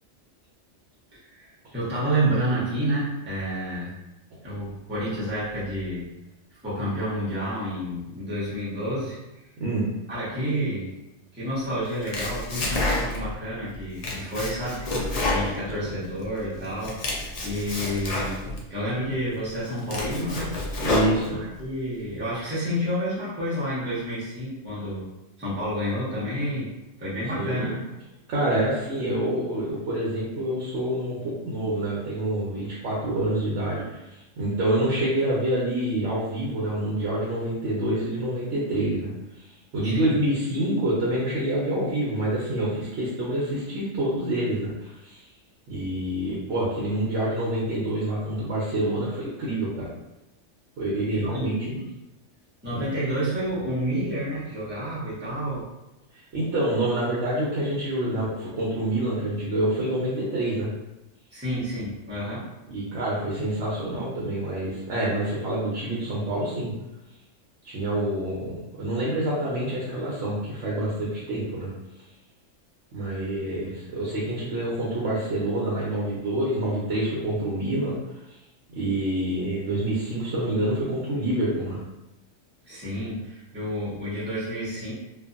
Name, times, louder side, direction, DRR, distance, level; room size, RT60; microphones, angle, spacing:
voice 1, 1.1-3.9 4.4-6.1 6.6-9.2 10.1-10.9 11.3-14.9 15.2-18.3 18.7-20.5 21.2-25.0 25.4-26.7 27.0-27.8 39.8-40.1 51.1-51.9 52.6-55.6 61.3-62.5 82.6-84.9, equal, 10° right, -10 dB, 0.8 m, -29 dB
Domestic sounds home sounds, 11.8-13.4 13.7-16.3 16.6-18.6 19.2-19.3 19.7-21.6, left 2 dB, 65° left, 0.4 m, -29 dB
voice 2, 20.8-21.4 27.3-27.8 28.3-39.5 39.7-45.3 45.7-49.9 50.8-51.7 52.7-52.9 56.1-60.7 62.7-66.7 67.6-71.7 72.9-77.9 78.3-78.4 78.7-81.8, right 1 dB, 70° right, -6 dB, 1.0 m, -27 dB
2.6 x 2.5 x 2.4 m, 0.95 s
omnidirectional pair, 1.3 m